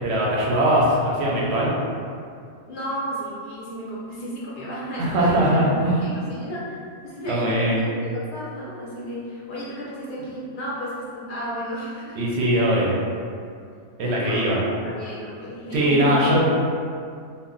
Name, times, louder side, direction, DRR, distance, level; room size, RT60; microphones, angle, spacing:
voice 1, 0.0-1.7 5.0-6.0 7.3-7.8 12.2-13.0 14.0-14.6 15.7-16.4, right 1 dB, 65° right, -5 dB, 0.8 m, -20 dB
voice 2, 2.7-6.6 7.0-12.2 12.5-12.6 14.0-16.2, equal, 55° left, -7 dB, 0.6 m, -33 dB
2.2 x 2.1 x 3.7 m, 2.3 s
omnidirectional pair, 1.3 m